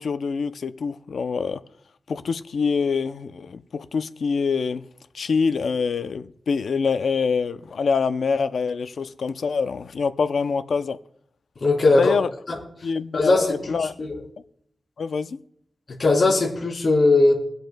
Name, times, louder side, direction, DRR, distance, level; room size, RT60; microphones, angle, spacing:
voice 1, 0.0-1.6 2.1-4.8 5.1-11.0 12.0-12.3 12.8-13.9 15.0-15.4, left 5 dB, 80° left, 0.5 m, -25 dB
voice 2, 11.6-12.1 12.5-12.6 13.1-13.7 16.0-17.4, left 2 dB, 55° left, 3.3 m, -18 dB
23.5 x 7.9 x 2.2 m
wide cardioid pair, 115°, 0 cm